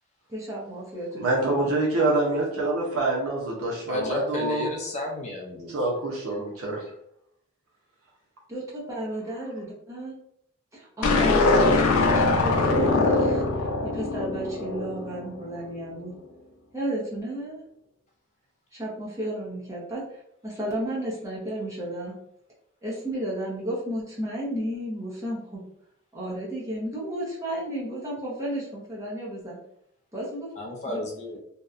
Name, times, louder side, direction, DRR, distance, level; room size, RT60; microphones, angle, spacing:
voice 1, 0.3-1.7 8.5-10.1 10.7-16.1 16.7-17.6 18.7-22.1 22.8-25.6 26.1-29.6 30.1-30.5 30.8-31.0, right 1 dB, 15° right, -6 dB, 0.6 m, -33 dB
voice 2, 1.2-4.7 5.7-6.8, right 2 dB, 80° right, -3 dB, 0.6 m, -26 dB
voice 3, 3.9-5.7 30.6-31.4, left 2 dB, 35° left, -1 dB, 0.4 m, -33 dB
sound 1, 11.0-15.4, left 3 dB, 90° left, 0.5 m, -22 dB
2.7 x 2.1 x 2.4 m, 0.72 s
head